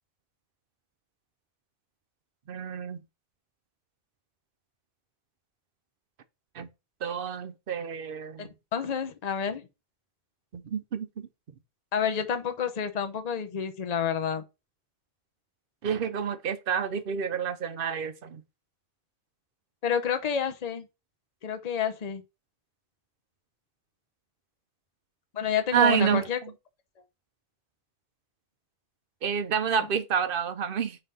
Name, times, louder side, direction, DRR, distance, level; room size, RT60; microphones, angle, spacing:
voice 1, 2.5-3.0 6.5-6.7 7.0-8.5 10.5-11.3 15.8-18.4 25.7-26.2 29.2-31.0, right 7 dB, 60° right, 0.9 m, -28 dB
voice 2, 8.4-9.7 11.9-14.4 19.8-20.9 21.4-22.2 25.3-26.4, left 7 dB, 45° left, 0.8 m, -29 dB
5.5 x 3.4 x 5.5 m
omnidirectional pair, 1.1 m